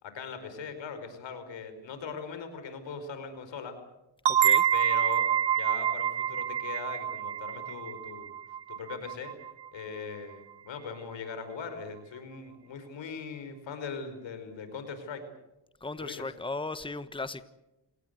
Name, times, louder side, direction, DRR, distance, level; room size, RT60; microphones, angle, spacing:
voice 1, 0.0-3.8 4.7-8.3 8.7-9.3 9.7-15.2 16.0-16.2, left 5 dB, 90° left, 9 dB, 5.0 m, -40 dB
sound 1, 4.3-9.7, right 9 dB, 75° right, 1.0 m, -27 dB
voice 2, 15.8-17.4, left 3 dB, 10° left, 12 dB, 1.3 m, -36 dB
28.0 x 18.5 x 8.1 m, 0.94 s
cardioid pair, 80°, 43 cm